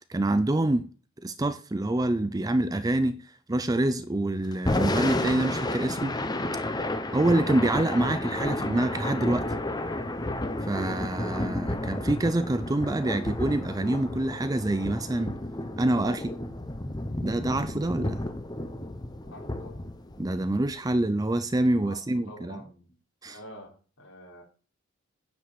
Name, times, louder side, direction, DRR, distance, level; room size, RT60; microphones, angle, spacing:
voice 1, 0.1-0.9 1.2-6.2 7.1-9.5 10.7-15.4 15.8-16.3 17.2-18.2 20.2-22.6 23.2-23.4, right 1 dB, 15° right, 0.5 m, -26 dB
Thunder / Rain, 4.5-20.8, left 1 dB, 20° left, 1.0 m, -31 dB
voice 2, 19.3-19.8 21.8-22.0 22.3-22.9 23.2-24.4, left 1 dB, 75° left, 4.4 m, -47 dB
9.8 x 5.4 x 8.3 m
head